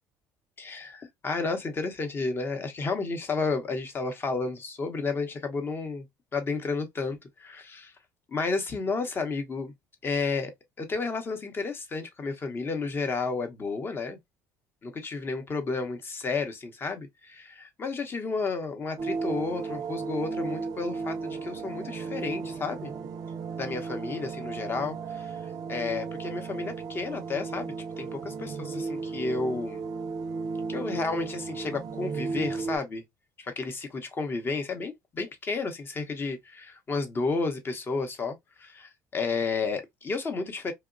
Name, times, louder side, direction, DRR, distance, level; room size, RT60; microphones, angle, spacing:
voice 1, 0.6-6.1 6.3-7.9 8.3-9.7 10.0-10.5 10.8-14.2 14.8-22.9 23.5-25.4 25.7-29.8 30.7-33.0 33.4-40.7, left 4 dB, 30° left, 0.7 m, -32 dB
sound 1, 19.0-32.8, right 4 dB, 55° right, 0.4 m, -35 dB
2.9 x 2.1 x 2.4 m
cardioid pair, 105°, 7 cm